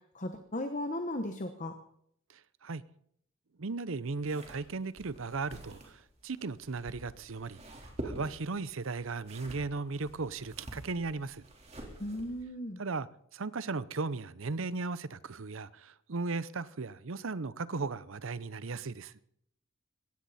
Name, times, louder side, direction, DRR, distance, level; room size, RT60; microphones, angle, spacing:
voice 1, 0.1-1.8 12.0-12.8, left 1 dB, 35° left, 1.1 m, -36 dB
voice 2, 3.6-5.9 6.2-7.6 8.0-11.4 12.8-13.1 13.3-19.1, right 3 dB, 70° right, 0.7 m, -36 dB
sound 1, 4.2-12.4, right 1 dB, 30° right, 3.8 m, -47 dB
20.0 x 16.5 x 4.2 m
head